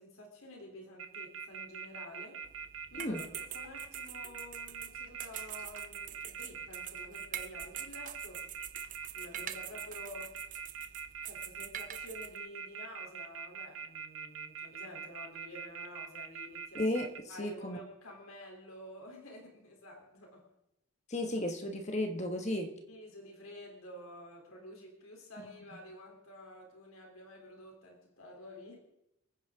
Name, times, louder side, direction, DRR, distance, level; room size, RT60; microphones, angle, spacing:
voice 1, 0.0-2.5 2.9-8.5 9.1-10.4 11.2-16.9 17.3-20.5 22.9-28.8, left 1 dB, 80° left, 1 dB, 3.6 m, -50 dB
sound 1, 1.0-17.2, right 6 dB, 70° right, 1.1 m, -42 dB
sound 2, 2.4-12.4, right 10 dB, 35° right, 0.7 m, -46 dB
voice 2, 16.7-17.1 17.4-17.8 21.1-22.7, left 1 dB, 30° left, 4 dB, 1.5 m, -33 dB
28.5 x 9.8 x 3.8 m, 0.84 s
head